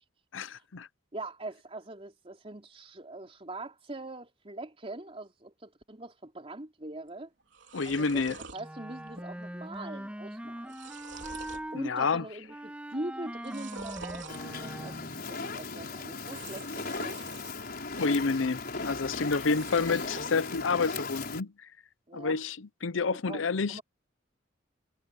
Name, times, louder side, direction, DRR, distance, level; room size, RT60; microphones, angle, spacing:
voice 1, 0.3-0.9 7.7-8.4 11.7-12.2 18.0-21.5 22.1-23.8, left 4 dB, 85° left, 0.7 m, -29 dB
voice 2, 1.1-7.3 7.8-8.2 8.5-10.7 11.7-17.2 22.1-22.4 23.0-23.4 23.7-23.8, right 2 dB, 30° right, 3.5 m, -42 dB
sound 1, 7.1-7.2 7.4-8.6 9.1-9.5 9.7-9.8 10.4-11.7 12.1-12.6 13.3-14.4 16.2-17.5 18.0-18.6 19.3-20.3, right 5 dB, 70° right, 3.7 m, -47 dB
Wind instrument woodwind instrument, 8.6-11.8 12.5-15.2, right 1 dB, 5° right, 1.9 m, -41 dB
Fire, 14.3-21.4, left 4 dB, 55° left, 5.2 m, -37 dB
head